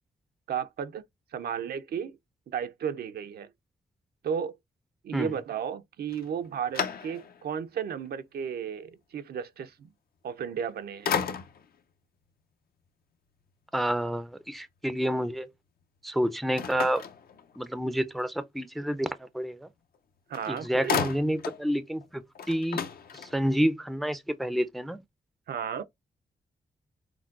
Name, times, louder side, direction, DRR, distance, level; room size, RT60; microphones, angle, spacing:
voice 1, 0.5-1.0 1.3-2.2 2.5-3.5 4.2-4.6 5.0-9.9 10.2-11.1 20.3-21.0 25.5-25.8, right 8 dB, 80° right, 0.5 m, -34 dB
sound 1, 6.1-7.5 8.1-8.2 10.4-10.7 11.0-11.8 16.6-17.8 19.9-20.0 20.3-21.7 22.0-22.1 22.3-23.6, left 7 dB, 70° left, 0.6 m, -33 dB
voice 2, 13.7-15.5 16.0-17.0 17.6-19.7 20.5-22.8 23.1-25.0, equal, ahead, 0.4 m, -29 dB
6.0 x 2.2 x 2.4 m
wide cardioid pair, 105°, 16 cm